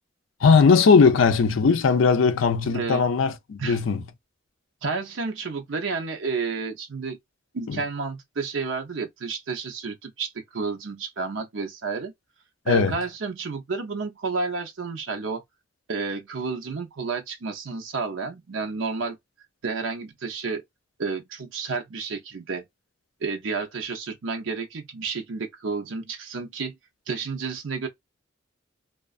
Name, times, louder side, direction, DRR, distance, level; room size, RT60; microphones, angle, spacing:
voice 1, 0.4-4.0 7.7-7.8 12.7-13.0, left 5 dB, 85° left, 0.5 m, -19 dB
voice 2, 4.8-7.2 7.5-12.1 12.7-15.4 15.9-19.2 19.6-20.6 21.0-22.7 23.2-26.8 27.1-27.9, right 4 dB, 80° right, 0.6 m, -31 dB
2.4 x 2.3 x 2.4 m
head